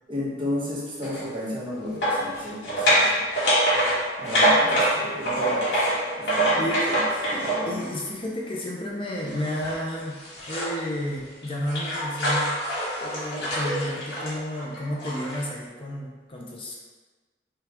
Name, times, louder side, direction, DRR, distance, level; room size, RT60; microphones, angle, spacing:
voice 1, 0.1-3.2 4.2-5.7 6.2-6.6 6.9-7.0 7.4-7.8, left 1 dB, 30° right, -6 dB, 1.1 m, -33 dB
sound 1, 1.0-1.2 2.0-8.0 9.2-10.8 11.2-15.4, right 1 dB, 75° left, 1.5 m, -25 dB
voice 2, 7.3-10.2 10.5-12.7 13.0-16.8, left 1 dB, 30° left, -2 dB, 0.5 m, -32 dB
5.8 x 2.4 x 3.5 m, 1.3 s
head